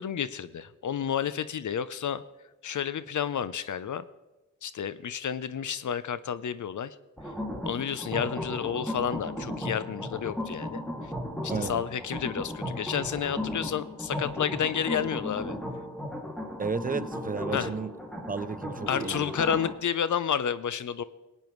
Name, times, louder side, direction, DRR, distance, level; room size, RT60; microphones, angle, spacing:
voice 1, 0.0-2.2 2.6-4.0 4.6-7.0 7.6-11.1 11.6-15.6 17.5-17.7 18.9-21.0, left 8 dB, 65° left, 0.6 m, -30 dB
sound 1, 7.2-19.7, left 1 dB, ahead, 2.4 m, -35 dB
voice 2, 11.5-11.8 16.6-17.9 18.3-19.3, right 4 dB, 25° right, 0.4 m, -33 dB
20.0 x 8.9 x 3.1 m
cardioid pair, 60°, 33 cm